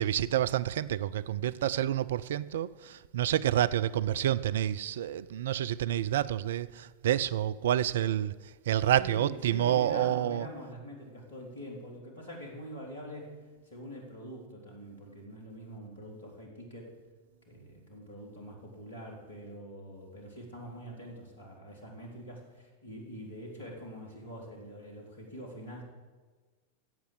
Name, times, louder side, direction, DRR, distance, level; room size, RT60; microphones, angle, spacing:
voice 1, 0.0-8.3 8.7-10.5, right 11 dB, 60° right, 0.4 m, -28 dB
voice 2, 8.8-16.9 17.5-25.8, equal, 65° left, 3.8 m, -44 dB
14.0 x 8.3 x 8.1 m
figure-of-eight pair, 90°, 0 cm